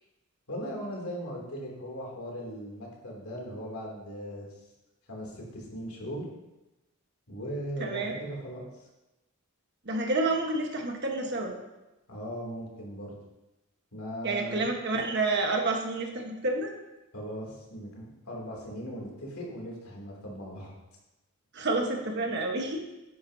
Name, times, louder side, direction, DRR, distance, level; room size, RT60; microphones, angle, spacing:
voice 1, 0.5-4.5 5.1-6.3 7.3-8.7 12.1-13.2 13.9-14.6 17.1-20.7, equal, 85° left, -2 dB, 2.9 m, -38 dB
voice 2, 7.8-8.1 9.8-11.5 14.2-16.7 21.5-22.8, right 2 dB, 50° right, 2 dB, 1.3 m, -29 dB
10.0 x 10.0 x 2.8 m, 0.99 s
head